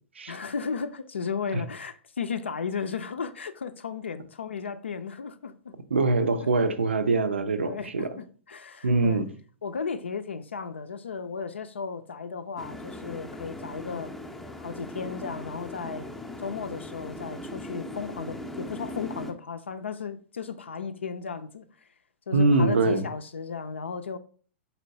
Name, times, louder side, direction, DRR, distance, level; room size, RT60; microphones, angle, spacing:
voice 1, 0.3-5.7 7.6-9.2 9.6-14.1 14.6-16.1 16.4-21.9 22.3-24.2, left 5 dB, 70° left, 0.4 m, -35 dB
voice 2, 5.9-8.2 8.8-9.2 22.3-23.0, right 3 dB, 70° right, 0.5 m, -23 dB
sound 1, 12.6-19.3, left 1 dB, 5° left, 0.5 m, -39 dB
4.4 x 4.2 x 2.7 m
figure-of-eight pair, 105°, 7 cm